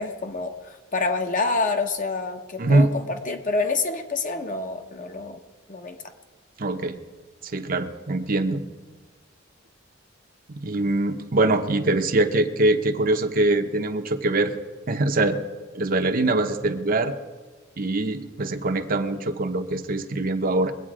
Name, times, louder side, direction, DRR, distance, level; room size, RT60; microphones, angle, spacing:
voice 1, 0.0-5.4 5.7-6.0, left 3 dB, 40° left, 5 dB, 1.1 m, -27 dB
voice 2, 2.6-2.9 6.6-7.0 7.4-8.6 10.5-14.5 14.9-15.4 15.7-17.1 17.8-20.7, right 2 dB, 45° right, 6 dB, 0.9 m, -23 dB
22.0 x 8.4 x 5.0 m, 1.3 s
head